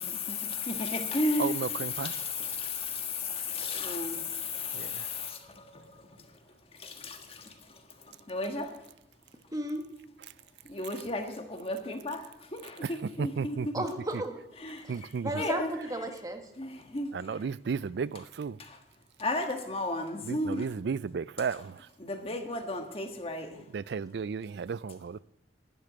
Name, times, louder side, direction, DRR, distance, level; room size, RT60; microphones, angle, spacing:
voice 1, 0.0-5.8 6.8-7.5 8.3-8.7 10.7-12.2 12.5-13.6 14.6-14.8 15.4-15.7 16.6-17.1 18.6-18.8 19.2-20.6 22.0-23.6, left 3 dB, 35° left, 1.6 m, -33 dB
voice 2, 1.4-2.2 4.7-5.1 12.8-13.8 14.9-15.4 17.1-18.6 20.2-21.9 23.7-25.2, right 6 dB, 65° right, 0.4 m, -34 dB
voice 3, 9.5-9.8 13.7-14.4 14.9-15.0 15.2-16.4, right 1 dB, 20° right, 1.4 m, -34 dB
12.0 x 6.9 x 9.8 m
head